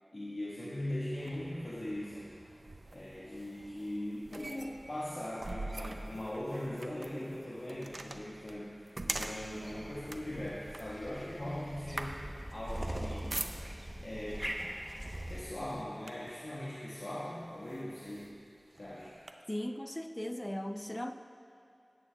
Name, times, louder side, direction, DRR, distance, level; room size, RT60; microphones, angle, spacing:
voice 1, 0.1-2.3 2.9-12.1 12.5-13.4 14.0-14.5 15.3-18.3 18.7-19.2, left 1 dB, 75° left, -9 dB, 1.6 m, -40 dB
sound 1, 1.2-14.0 14.8-15.1 15.5-16.5 17.1-17.2 17.6-19.3, right 2 dB, 75° right, 0.5 m, -44 dB
sound 2, 9.4-15.8, right 1 dB, 20° right, 0.9 m, -42 dB
voice 2, 19.5-21.1, left 1 dB, 20° left, 7 dB, 0.5 m, -37 dB
17.5 x 8.6 x 2.3 m, 2.4 s
wide cardioid pair, 55°, 0 cm